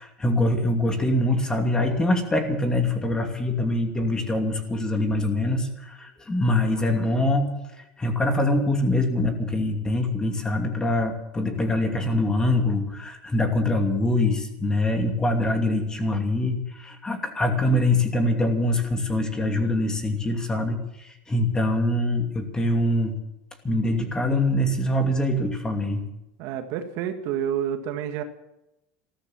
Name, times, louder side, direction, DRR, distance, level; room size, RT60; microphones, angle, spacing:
voice 1, 0.0-7.6 8.0-23.1 23.6-26.0, left 1 dB, 15° left, 5 dB, 2.7 m, -24 dB
voice 2, 26.4-28.2, right 9 dB, 60° right, 7 dB, 1.8 m, -29 dB
14.5 x 13.5 x 7.3 m, 0.88 s
supercardioid pair, 120°, 5 cm